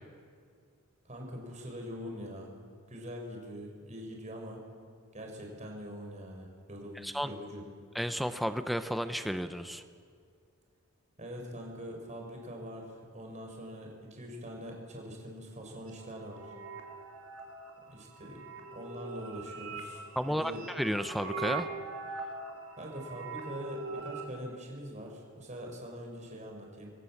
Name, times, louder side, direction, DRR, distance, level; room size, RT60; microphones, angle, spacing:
voice 1, 1.0-2.5 2.9-4.6 5.1-7.6 11.2-16.5 17.9-18.5 18.7-20.6 22.8-26.9, equal, 35° right, 1 dB, 4.8 m, -43 dB
voice 2, 7.0-7.3 7.9-9.8 20.2-21.7, equal, ahead, 9 dB, 0.9 m, -32 dB
sound 1, 15.9-24.3, right 4 dB, 70° right, 3.8 m, -42 dB
27.5 x 22.0 x 7.3 m, 2.2 s
head